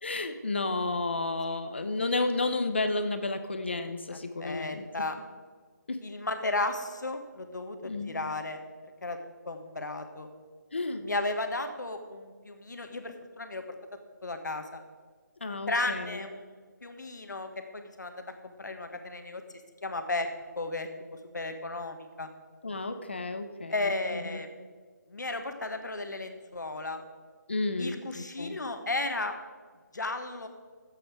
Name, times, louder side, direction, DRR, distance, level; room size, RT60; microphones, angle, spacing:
voice 1, 0.0-5.1 5.9-6.0 7.8-8.1 10.7-11.1 15.4-16.3 22.6-24.4 27.5-28.6, left 2 dB, 35° left, 9 dB, 0.7 m, -32 dB
voice 2, 4.4-5.2 6.0-8.6 9.0-9.2 9.4-10.3 11.0-13.6 14.2-14.8 15.7-19.4 19.8-20.3 20.6-20.9 21.3-22.3 23.7-24.5 25.1-27.0 27.8-29.3 29.9-30.5, left 2 dB, 70° left, 6 dB, 1.4 m, -34 dB
12.0 x 7.9 x 4.7 m, 1.5 s
figure-of-eight pair, 180°, 10 cm